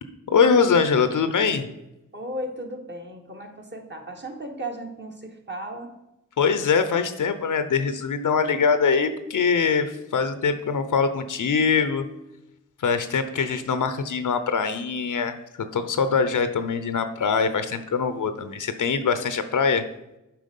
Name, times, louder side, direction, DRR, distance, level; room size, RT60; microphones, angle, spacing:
voice 1, 0.3-1.6 6.4-12.1 12.8-15.4 15.7-19.9, left 5 dB, 75° left, 10 dB, 0.7 m, -23 dB
voice 2, 2.1-5.9, right 1 dB, 35° right, 2 dB, 1.5 m, -35 dB
7.6 x 4.7 x 5.3 m, 0.93 s
cardioid pair, 60°, 31 cm